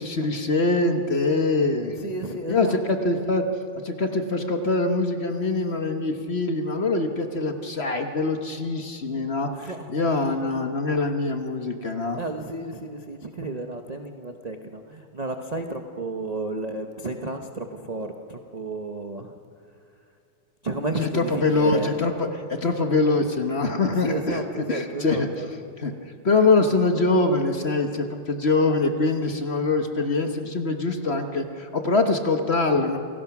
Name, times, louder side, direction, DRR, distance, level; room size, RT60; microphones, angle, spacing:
voice 1, 0.0-1.9 2.5-3.4 3.8-12.2 21.0-25.3 25.8-25.9 26.2-33.0, left 3 dB, 40° left, 6 dB, 1.2 m, -24 dB
voice 2, 1.9-2.8 9.5-9.9 12.1-19.4 20.6-22.1 23.9-25.5, right 2 dB, 35° right, 5 dB, 0.6 m, -32 dB
28.0 x 18.0 x 6.0 m, 2.5 s
omnidirectional pair, 2.0 m